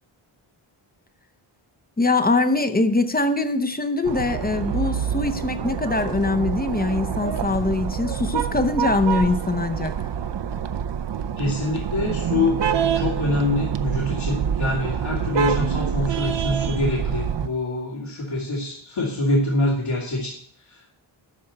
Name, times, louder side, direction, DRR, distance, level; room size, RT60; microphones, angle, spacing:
voice 1, 2.0-9.9, left 3 dB, 20° left, 9 dB, 0.7 m, -23 dB
sound 1, 4.0-17.5, right 7 dB, 55° right, 0.7 m, -26 dB
voice 2, 11.4-12.6 12.9-20.3 20.6-20.8, left 2 dB, 70° left, -6 dB, 2.7 m, -25 dB
12.5 x 4.3 x 7.8 m, 0.64 s
wide cardioid pair, 145°, 50 cm